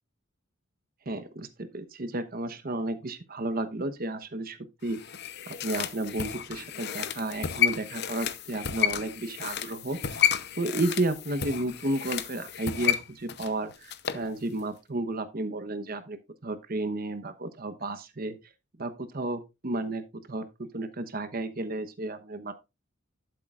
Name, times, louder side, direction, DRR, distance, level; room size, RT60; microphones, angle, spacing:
voice 1, 1.1-5.0 5.5-10.2 10.6-18.4 18.8-20.0 20.3-22.5, right 2 dB, 45° right, 1.0 m, -32 dB
sound 1, 4.9-14.3 14.6-14.7, left 9 dB, 55° left, 0.7 m, -31 dB
12.0 x 7.7 x 2.5 m
head